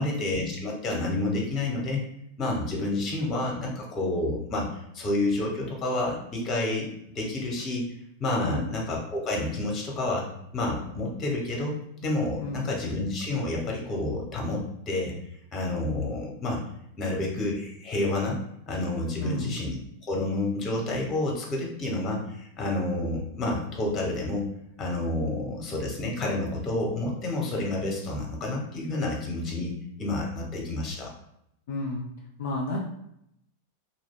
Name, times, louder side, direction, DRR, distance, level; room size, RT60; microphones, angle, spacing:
voice 1, 0.0-2.0 2.4-6.9 7.1-7.9 8.2-10.3 10.5-11.8 12.0-15.1 15.5-16.6 17.0-18.4 18.7-19.8 20.0-24.5 24.8-29.7 30.0-31.1, left 2 dB, 25° left, -1 dB, 0.8 m, -29 dB
voice 2, 19.2-19.6 31.7-32.1 32.4-32.8, left 1 dB, 55° left, -1 dB, 0.4 m, -31 dB
2.5 x 2.2 x 3.5 m, 0.76 s
figure-of-eight pair, 90°, 0 cm